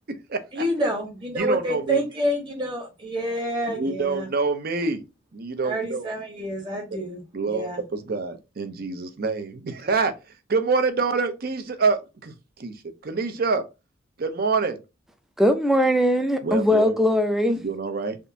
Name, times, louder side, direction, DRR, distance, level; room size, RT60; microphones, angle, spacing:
voice 1, 0.5-4.3 5.6-7.2 7.5-7.8, right 1 dB, 25° right, 1.2 m, -28 dB
voice 2, 1.3-2.0 3.8-5.0 5.3-6.1 7.3-10.1 10.5-12.0 12.2-12.3 12.6-12.7 13.0-13.6 14.2-14.8 16.4-17.0 17.6-18.2, right 4 dB, 50° right, 0.5 m, -26 dB
voice 3, 15.4-17.6, left 1 dB, ahead, 0.4 m, -20 dB
3.6 x 2.5 x 2.7 m
head